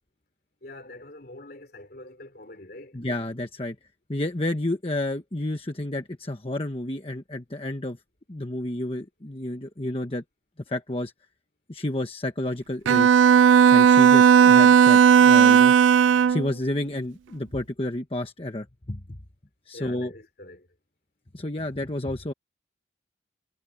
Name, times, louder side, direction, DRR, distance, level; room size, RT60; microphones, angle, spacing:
voice 1, 0.6-3.0 19.7-20.7, left 2 dB, 55° left, 3.8 m, -44 dB
voice 2, 2.9-3.8 4.1-8.0 8.3-10.2 10.7-11.1 11.7-13.1 13.7-15.7 16.3-19.2 19.7-20.1 21.3-22.3, left 1 dB, 30° left, 1.2 m, -30 dB
Bowed string instrument, 12.9-16.5, right 7 dB, 90° right, 0.3 m, -15 dB
head